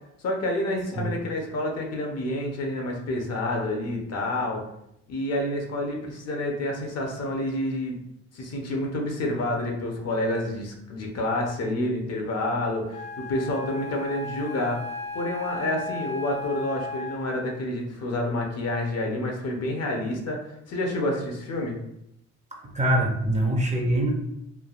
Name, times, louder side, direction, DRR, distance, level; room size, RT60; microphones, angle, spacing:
voice 1, 0.2-4.6 5.1-8.0 8.3-14.8 15.1-21.8, left 1 dB, 55° left, 1 dB, 0.7 m, -28 dB
Wind instrument woodwind instrument, 12.9-17.5, left 3 dB, 25° left, 0.4 m, -36 dB
voice 2, 22.6-24.1, right 1 dB, 25° right, 1 dB, 0.6 m, -24 dB
3.3 x 2.3 x 2.4 m, 0.80 s
cardioid pair, 90°, 30 cm